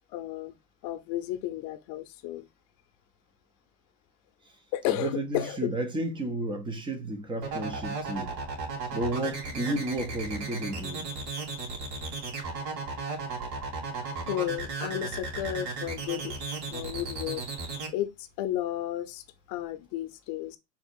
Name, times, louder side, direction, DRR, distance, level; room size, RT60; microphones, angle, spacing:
voice 1, 0.1-0.5 0.8-2.5 4.7-5.7 14.3-16.3 16.7-17.4 17.9-20.6, left 13 dB, 45° left, 0.7 m, -33 dB
voice 2, 5.0-8.3 8.9-11.1, right 1 dB, 10° right, 0.5 m, -32 dB
sound 1, 7.4-17.9, right 4 dB, 50° right, 2.7 m, -35 dB
4.0 x 2.4 x 4.4 m
hypercardioid pair, 115°, 49 cm